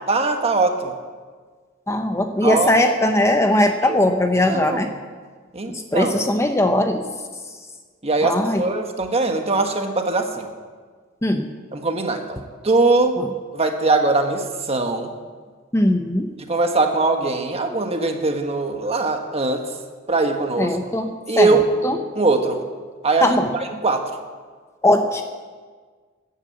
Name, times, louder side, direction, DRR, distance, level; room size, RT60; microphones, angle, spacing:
voice 1, 0.1-0.9 2.4-2.7 3.9-4.0 4.5-4.9 5.5-6.1 8.0-10.5 11.7-13.2 13.5-15.1 16.4-19.6 20.1-20.8 21.3-21.6 22.1-22.6 23.0-23.4 23.7-24.1, right 3 dB, 30° right, 5 dB, 1.4 m, -21 dB
voice 2, 1.9-4.9 5.7-7.0 8.2-8.6 11.2-11.5 13.2-13.3 15.7-16.3 20.6-21.6 21.8-22.0 23.2-23.5 24.8-25.2, left 1 dB, 15° left, 6 dB, 0.7 m, -19 dB
14.5 x 10.0 x 7.6 m, 1.5 s
head